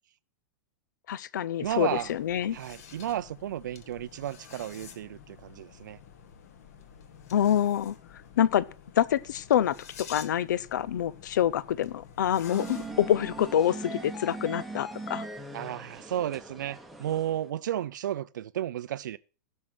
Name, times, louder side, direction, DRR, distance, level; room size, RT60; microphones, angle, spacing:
voice 1, 1.1-2.6 7.3-7.9 8.4-8.6 9.0-15.2, left 10 dB, 75° left, 0.7 m, -26 dB
sound 1, 1.6-13.6, left 7 dB, 55° left, 2.1 m, -50 dB
voice 2, 1.6-2.1 2.5-6.0 15.5-19.2, right 11 dB, 85° right, 0.5 m, -33 dB
sound 2, 12.5-17.5, right 2 dB, ahead, 1.0 m, -40 dB
16.0 x 6.5 x 6.1 m
supercardioid pair, 170°, 10 cm